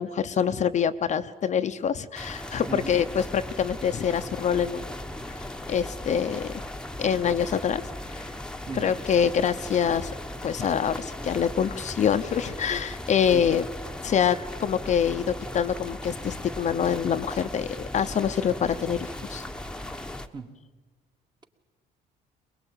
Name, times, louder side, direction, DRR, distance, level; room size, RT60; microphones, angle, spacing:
voice 1, 0.0-4.9 5.3-6.6 7.0-7.8 8.1-8.3 8.7-10.1 10.4-13.7 14.0-19.4, left 8 dB, 45° left, 9 dB, 0.8 m, -26 dB
sound 1, 2.1-20.3, left 1 dB, 5° left, 1.2 m, -38 dB
voice 2, 8.7-9.0 13.3-13.4 20.3-20.5, right 5 dB, 25° right, 5 dB, 2.1 m, -36 dB
22.5 x 21.5 x 9.0 m, 1.3 s
cardioid pair, 110°, 17 cm